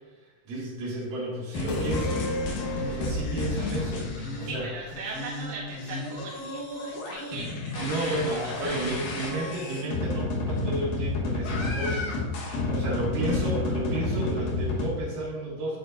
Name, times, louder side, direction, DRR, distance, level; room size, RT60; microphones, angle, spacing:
voice 1, 0.5-2.3 2.8-4.7 7.7-15.8, right 1 dB, 55° right, -5 dB, 3.4 m, -32 dB
sound 1, 1.5-4.5 4.9-14.9, left 2 dB, 65° left, 2.5 m, -31 dB
sound 2, 1.7-5.3 5.6-5.7, left 2 dB, 90° left, 1.9 m, -34 dB
voice 2, 4.4-9.3 12.4-12.6, right 3 dB, 70° right, -3 dB, 2.3 m, -40 dB
8.6 x 8.4 x 2.6 m, 1.2 s
omnidirectional pair, 5.3 m